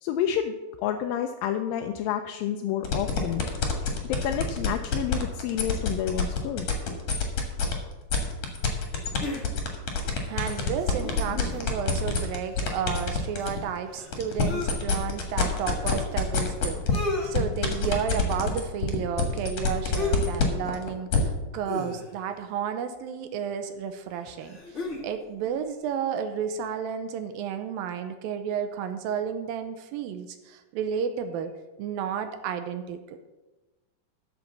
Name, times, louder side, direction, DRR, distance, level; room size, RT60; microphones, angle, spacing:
voice 1, 0.0-3.5 4.0-6.7, left 9 dB, 80° left, 5 dB, 2.2 m, -29 dB
sound 1, 2.8-7.7 8.1-13.6 14.0-21.2, left 6 dB, 55° left, 2.3 m, -26 dB
sound 2, 9.2-9.9 10.4-11.8 12.1-12.2 12.5-14.7 15.4-15.5 16.4-16.5 16.7-17.3 17.9-18.1 20.0-20.3 20.6-20.8 21.6-22.3 23.4-23.5 24.1-25.1 25.4-25.5, left 3 dB, 30° left, 1.4 m, -35 dB
voice 2, 10.3-31.5 31.8-33.2, right 7 dB, 80° right, 8 dB, 2.3 m, -32 dB
12.5 x 5.2 x 7.1 m, 1.1 s
omnidirectional pair, 4.4 m